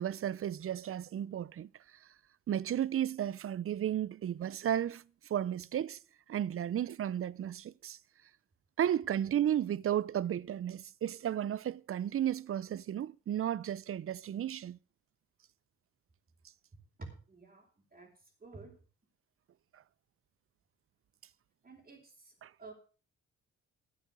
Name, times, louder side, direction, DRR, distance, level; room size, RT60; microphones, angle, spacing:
voice 1, 0.0-1.7 2.5-5.0 5.3-6.0 6.3-8.0 8.8-14.8 22.4-22.5, right 10 dB, 45° right, 0.7 m, -33 dB
voice 2, 17.0-18.1 18.4-18.8 21.6-22.3 22.6-22.7, right 3 dB, 25° right, 4.7 m, -50 dB
13.5 x 8.7 x 6.5 m
cardioid pair, 90°, 30 cm